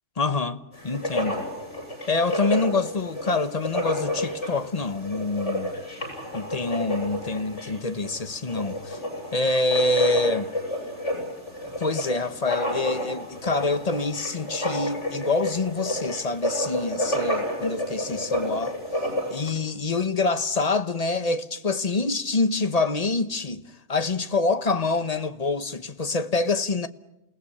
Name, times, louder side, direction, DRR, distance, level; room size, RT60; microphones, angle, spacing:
voice 1, 0.2-1.5 2.1-5.7 6.3-9.0 9.3-10.5 11.8-18.8 19.3-26.9, left 3 dB, 35° left, 1.1 m, -26 dB
Writing, 0.7-19.5, equal, 85° left, 8.4 m, -30 dB
28.5 x 18.5 x 10.0 m
omnidirectional pair, 1.2 m